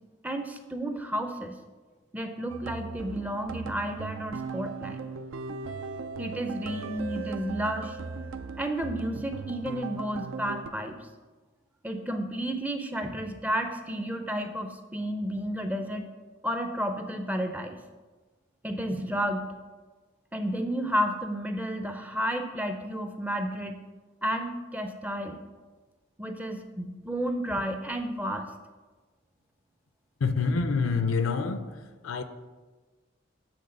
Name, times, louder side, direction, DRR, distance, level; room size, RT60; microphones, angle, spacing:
voice 1, 0.2-1.5 2.1-5.0 6.2-8.0 8.6-11.0 11.8-16.1 16.4-17.8 18.6-19.5 20.3-23.8 24.2-25.4 26.2-28.5, equal, 10° right, 0.4 m, -31 dB
sound 1, 2.5-10.7, right 4 dB, 85° right, 0.5 m, -38 dB
voice 2, 30.2-31.7 32.0-32.2, left 4 dB, 80° left, 0.5 m, -26 dB
7.8 x 3.7 x 6.5 m
head